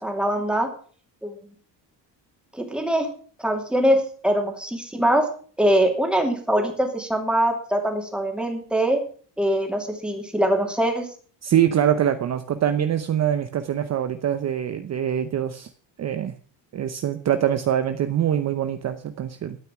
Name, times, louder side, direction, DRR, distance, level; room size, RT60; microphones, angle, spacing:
voice 1, 0.0-0.7 1.2-1.4 2.5-3.1 3.4-5.3 5.6-9.0 9.4-11.1, right 1 dB, ahead, 2 dB, 2.6 m, -23 dB
voice 2, 11.4-15.7 16.0-16.3 16.7-19.6, right 10 dB, 40° right, 9 dB, 0.8 m, -24 dB
12.5 x 9.2 x 6.0 m, 0.43 s
cardioid pair, 175°, 43 cm